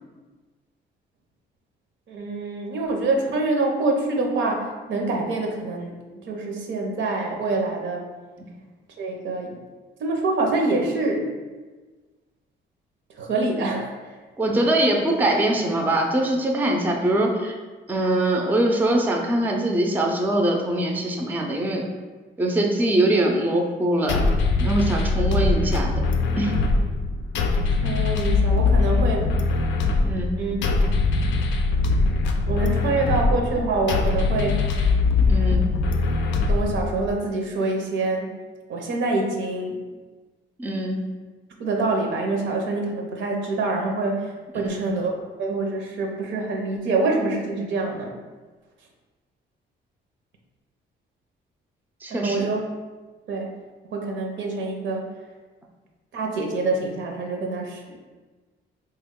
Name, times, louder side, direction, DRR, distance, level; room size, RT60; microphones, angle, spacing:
voice 1, 2.1-8.0 9.0-9.5 10.0-11.3 13.2-14.2 27.8-29.3 30.4-30.6 30.9-31.0 32.5-34.6 36.5-38.3 38.7-39.8 41.6-48.2 52.1-52.6 53.3-53.5 53.9-55.1 56.1-58.0, right 3 dB, 70° right, 1 dB, 0.6 m, -26 dB
voice 2, 14.4-17.5 17.9-21.9 22.4-24.3 24.6-25.9 26.4-26.6 30.0-30.4 35.2-35.7 40.6-41.1 44.6-44.9 52.0-52.5, right 1 dB, 10° right, 1 dB, 0.4 m, -23 dB
sound 1, 24.1-37.1, left 3 dB, 70° left, 0.4 m, -22 dB
3.4 x 2.2 x 3.5 m, 1.3 s
cardioid pair, 90°, 20 cm